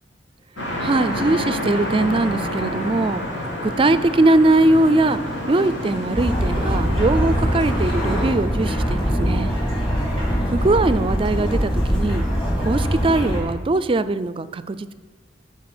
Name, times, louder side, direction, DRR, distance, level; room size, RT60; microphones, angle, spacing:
sound 1, 0.6-8.3, equal, 85° left, 3.1 m, -28 dB
voice 1, 0.8-3.2 3.6-5.2 5.5-9.6 10.5-12.2 12.6-14.9, right 2 dB, 30° right, 14 dB, 0.4 m, -20 dB
sound 2, 6.2-13.4, equal, 30° left, 2.8 m, -22 dB
14.0 x 4.7 x 6.0 m, 1.4 s
head